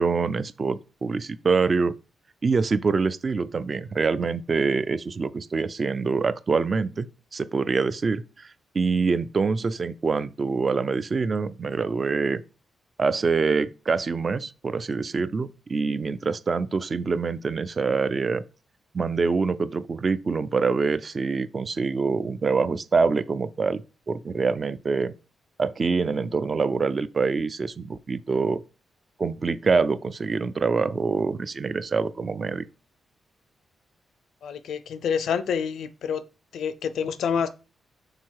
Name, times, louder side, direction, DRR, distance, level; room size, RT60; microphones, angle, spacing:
voice 1, 0.0-1.9 2.4-7.1 7.3-12.4 13.0-18.4 18.9-23.8 24.1-25.2 25.6-28.6 29.2-32.7, right 4 dB, 30° right, 0.4 m, -25 dB
voice 2, 34.4-36.2 36.5-37.5, left 7 dB, 80° left, 0.6 m, -27 dB
6.5 x 3.7 x 4.6 m
wide cardioid pair, 150°, 0 cm